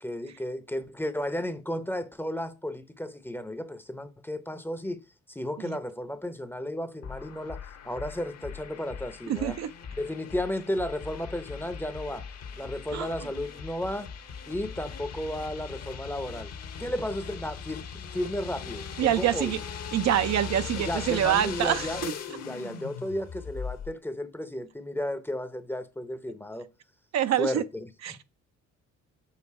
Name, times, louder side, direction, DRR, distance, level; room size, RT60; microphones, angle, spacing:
voice 1, 0.0-5.0 5.3-9.6 9.9-12.2 12.6-14.1 14.5-16.5 16.8-19.6 20.7-26.7 27.4-28.2, left 1 dB, 5° left, 0.7 m, -34 dB
sound 1, 7.0-23.9, left 6 dB, 60° left, 1.1 m, -39 dB
voice 2, 9.3-9.7 12.9-13.1 19.0-19.6 19.9-21.9 27.1-27.6 28.0-28.2, right 11 dB, 65° right, 0.6 m, -25 dB
7.5 x 3.9 x 4.8 m
cardioid pair, 90°, 30 cm